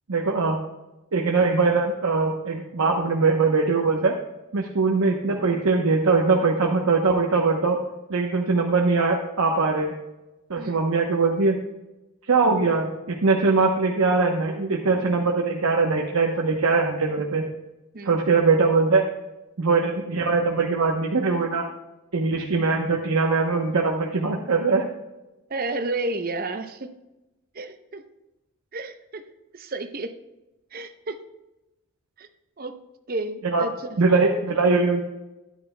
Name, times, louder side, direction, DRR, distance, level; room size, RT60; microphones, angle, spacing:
voice 1, 0.1-0.6 1.1-4.1 4.5-7.8 8.1-9.9 10.5-11.6 12.3-17.4 18.0-19.0 19.6-21.7 22.1-24.8 33.4-33.6 34.0-35.0, right 4 dB, 90° right, 0 dB, 0.9 m, -21 dB
voice 2, 25.5-26.9 27.5-28.0 28.7-29.2 29.5-30.1 30.7-31.2 32.2-32.3 32.6-32.7 33.1-34.0, right 2 dB, 40° right, 8 dB, 0.7 m, -31 dB
13.0 x 10.5 x 2.2 m, 1.0 s
head